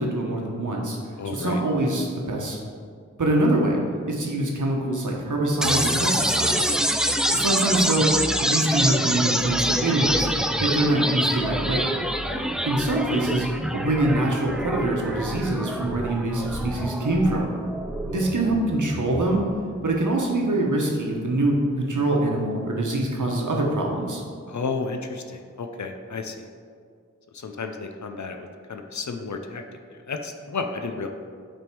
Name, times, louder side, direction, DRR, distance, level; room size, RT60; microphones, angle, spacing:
voice 1, 0.0-1.0 1.2-2.6 3.2-6.7 7.3-8.1 8.4-10.3 10.6-11.8 12.6-13.5 13.7-17.5 18.1-19.5 19.8-24.2, right 1 dB, 90° right, -1 dB, 1.1 m, -24 dB
voice 2, 1.2-1.6 12.3-12.5 24.5-26.4 27.4-28.4 28.7-29.6 30.1-31.1, left 4 dB, 70° left, 5 dB, 0.5 m, -32 dB
sound 1, 5.6-19.6, equal, ahead, 0.3 m, -26 dB
8.9 x 3.5 x 4.6 m, 2.2 s
wide cardioid pair, 65°, 30 cm